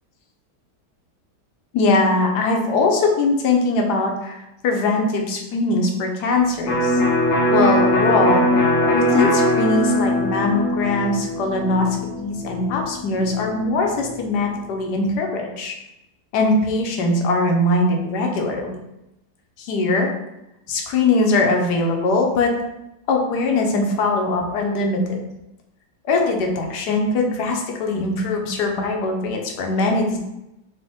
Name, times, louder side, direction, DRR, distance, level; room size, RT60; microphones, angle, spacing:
voice 1, 1.7-7.0 7.5-8.5 8.9-15.8 16.3-18.8 19.6-20.1 20.7-22.5 23.1-25.2 26.1-30.2, left 2 dB, 75° left, 2 dB, 1.3 m, -21 dB
Electric guitar, 6.7-14.3, left 1 dB, 50° left, 0.9 m, -21 dB
4.2 x 3.1 x 3.5 m, 0.91 s
omnidirectional pair, 1.9 m